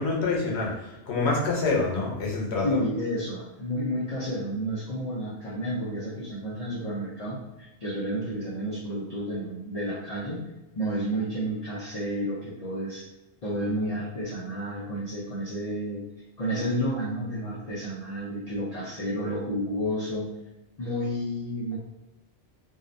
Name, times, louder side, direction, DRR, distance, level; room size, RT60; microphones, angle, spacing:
voice 1, 0.0-2.8, left 3 dB, 85° left, -2 dB, 1.0 m, -26 dB
voice 2, 2.6-10.5 10.7-13.0 13.4-16.0 16.4-20.3 20.8-21.8, equal, 50° left, -7 dB, 0.5 m, -31 dB
2.7 x 2.0 x 2.5 m, 1.0 s
omnidirectional pair, 1.1 m